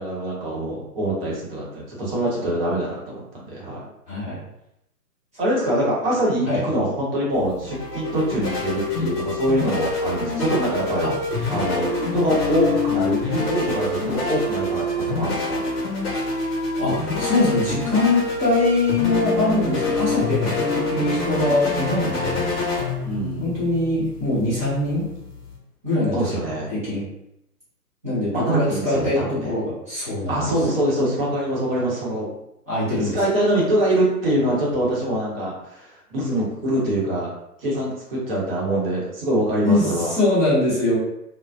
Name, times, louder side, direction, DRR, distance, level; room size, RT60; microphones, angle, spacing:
voice 1, 0.0-3.8 5.4-11.1 11.5-15.6 23.0-23.6 26.1-26.7 28.3-29.6 30.3-32.3 33.1-37.3 37.6-40.1, right 1 dB, 35° right, -5 dB, 1.0 m, -24 dB
voice 2, 4.1-4.4 6.4-6.6 11.0-11.1 16.7-22.5 23.4-25.1 25.8-26.4 26.7-27.0 28.0-30.4 32.7-33.2 39.6-41.0, left 2 dB, 10° right, -12 dB, 0.5 m, -22 dB
sound 1, 7.3-25.6, left 3 dB, 40° left, 1.0 m, -26 dB
2.3 x 2.2 x 2.4 m, 0.80 s
figure-of-eight pair, 125°, 48 cm